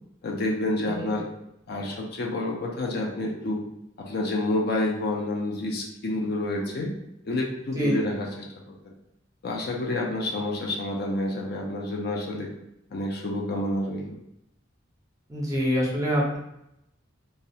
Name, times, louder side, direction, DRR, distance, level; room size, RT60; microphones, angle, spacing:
voice 1, 0.2-1.3 1.7-3.6 4.0-6.9 7.2-8.9 9.4-12.5 12.9-14.2, left 1 dB, 55° left, -1 dB, 0.4 m, -29 dB
voice 2, 15.3-16.4, equal, 15° right, -4 dB, 0.6 m, -25 dB
2.3 x 2.1 x 2.7 m, 0.81 s
head